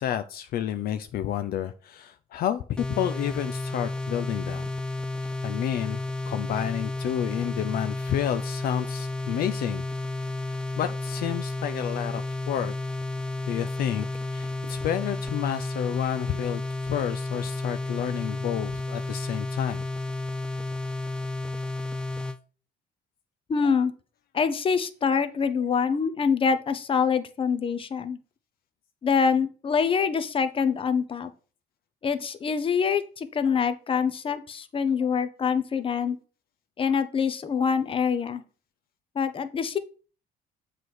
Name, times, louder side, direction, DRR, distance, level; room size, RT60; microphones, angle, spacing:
voice 1, 0.0-4.7 5.4-6.0 6.3-9.8 10.8-12.7 13.5-14.1 14.3-19.8, left 10 dB, 60° left, 10 dB, 0.5 m, -30 dB
sound 1, 2.8-22.4, left 2 dB, 5° left, 0.5 m, -32 dB
voice 2, 23.5-23.9 24.3-28.2 29.0-31.3 32.0-36.2 36.8-38.4 39.1-39.8, left 6 dB, 30° left, 11 dB, 0.8 m, -25 dB
7.4 x 3.3 x 6.0 m, 0.38 s
cardioid pair, 110°, 17 cm